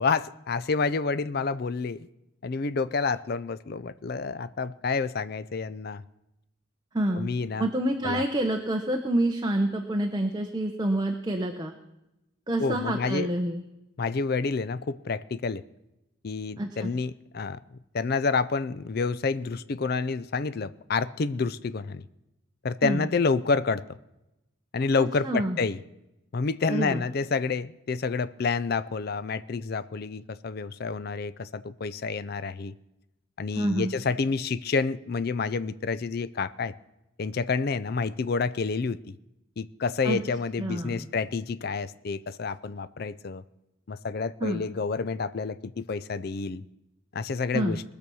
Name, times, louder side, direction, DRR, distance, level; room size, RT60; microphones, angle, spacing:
voice 1, 0.0-2.1 2.4-6.0 7.2-7.7 8.0-8.2 12.6-13.3 14.0-15.6 16.2-17.6 17.9-22.1 22.6-23.8 24.7-25.8 26.3-32.7 33.4-36.7 37.2-39.1 39.6-43.4 43.9-46.6 47.1-47.8, left 4 dB, 45° left, 16 dB, 0.4 m, -29 dB
voice 2, 6.9-7.3 7.6-11.7 12.5-13.6 16.6-16.9 22.8-23.1 25.0-25.6 26.7-27.0 33.5-33.9 40.0-40.2 40.6-41.1 44.4-44.6 47.5-47.8, right 1 dB, 20° right, 3 dB, 0.9 m, -27 dB
20.0 x 6.9 x 6.2 m, 0.92 s
head